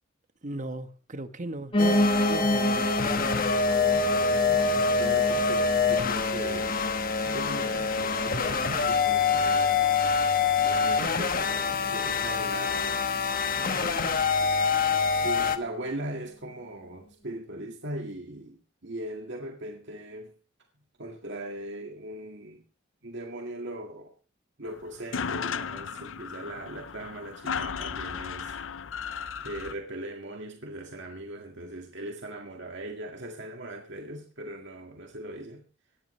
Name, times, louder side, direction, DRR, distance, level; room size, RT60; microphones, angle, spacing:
voice 1, 0.4-3.2, right 2 dB, 40° right, 9 dB, 1.3 m, -37 dB
Piano, 1.7-10.8 11.2-12.4 12.7-12.8 13.0-13.1 13.3-13.4 14.0-14.1, left 1 dB, 30° left, 1.5 m, -31 dB
sound 1, 1.8-15.6, left 5 dB, 50° left, 1.2 m, -25 dB
voice 2, 3.9-6.8 7.2-9.9 10.6-13.0 13.5-14.3 14.6-20.3 21.0-22.6 23.0-24.1 24.6-28.6 29.4-35.6, right 1 dB, 65° right, 2 dB, 2.0 m, -39 dB
sound 2, 24.7-24.8 24.9-29.7, left 6 dB, 75° left, 0.6 m, -35 dB
19.0 x 13.5 x 3.2 m, 0.36 s
head